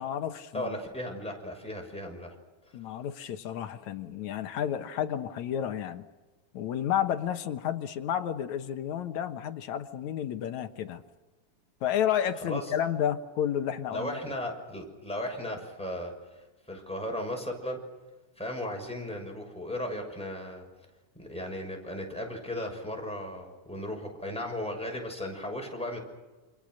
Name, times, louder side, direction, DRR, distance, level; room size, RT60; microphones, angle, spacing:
voice 1, 0.0-0.8 2.7-6.0 6.5-11.0 11.8-14.2, left 10 dB, 70° left, 8 dB, 2.5 m, -31 dB
voice 2, 0.5-2.3 12.4-12.7 13.9-16.4 16.7-17.8 18.4-20.6 21.1-26.0, left 1 dB, ahead, 1 dB, 6.3 m, -36 dB
28.5 x 27.0 x 6.5 m, 1.2 s
omnidirectional pair, 3.5 m